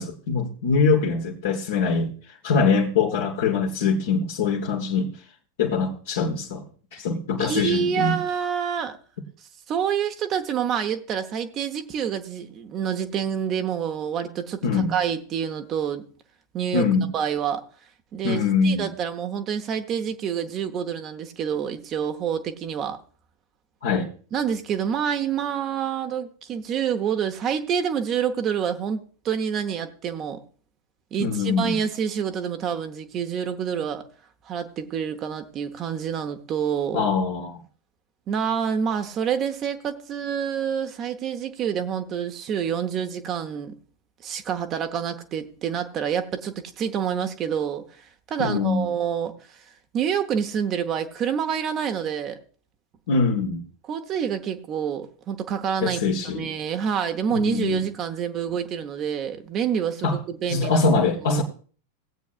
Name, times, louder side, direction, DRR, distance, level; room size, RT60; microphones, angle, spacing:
voice 1, 0.0-5.1 5.6-6.6 6.9-8.2 14.6-14.9 16.7-17.1 18.2-18.9 23.8-24.1 31.2-31.8 36.9-37.6 48.4-48.9 53.1-53.6 55.8-56.5 57.3-57.8 60.0-60.2 60.5-61.4, left 4 dB, 55° left, 1.3 m, -23 dB
voice 2, 7.4-9.0 9.7-16.1 16.5-16.9 17.1-17.6 18.1-23.0 24.3-30.4 31.1-34.0 34.4-37.1 38.3-43.7 44.2-47.8 48.3-49.3 49.9-52.4 53.9-60.9 61.2-61.4, right 8 dB, 30° right, 0.9 m, -27 dB
17.5 x 8.3 x 2.5 m
figure-of-eight pair, 90°, 0 cm